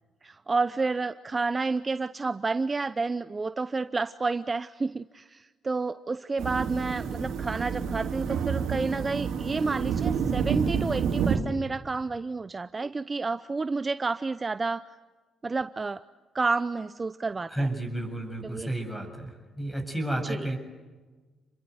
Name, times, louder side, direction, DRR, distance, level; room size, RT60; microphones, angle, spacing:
voice 1, 0.2-14.8 15.4-16.0 16.3-17.7 18.4-18.7 20.2-20.5, right 3 dB, 30° right, 12 dB, 0.8 m, -30 dB
sound 1, 6.4-11.4, right 7 dB, 80° right, 3.5 m, -29 dB
voice 2, 17.5-20.6, right 1 dB, 10° left, 6 dB, 7.5 m, -31 dB
29.0 x 22.5 x 8.0 m, 1.3 s
cardioid pair, 90°, 0 cm